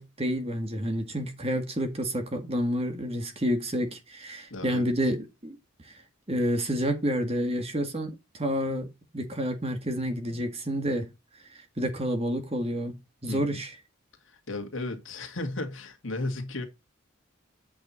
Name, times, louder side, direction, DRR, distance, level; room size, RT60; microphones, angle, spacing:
voice 1, 0.0-5.6 6.3-8.9 9.1-11.1 11.8-13.0 13.2-13.7, equal, 30° right, 1.8 m, -29 dB
voice 2, 4.5-4.9 13.3-13.6 14.3-16.6, left 2 dB, 70° left, 2.1 m, -35 dB
8.5 x 6.0 x 4.1 m
head